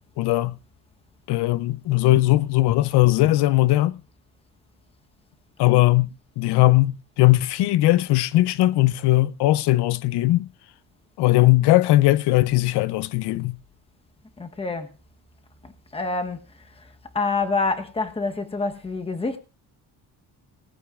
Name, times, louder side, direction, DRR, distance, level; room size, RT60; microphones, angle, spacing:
voice 1, 0.2-0.6 1.3-4.0 5.6-6.1 6.4-10.5 11.2-13.6, left 17 dB, 90° left, 0.7 m, -19 dB
voice 2, 14.4-14.9 15.6-16.4 17.1-19.4, left 3 dB, 15° left, 1.1 m, -27 dB
19.0 x 14.5 x 2.4 m
cardioid pair, 160°, 39 cm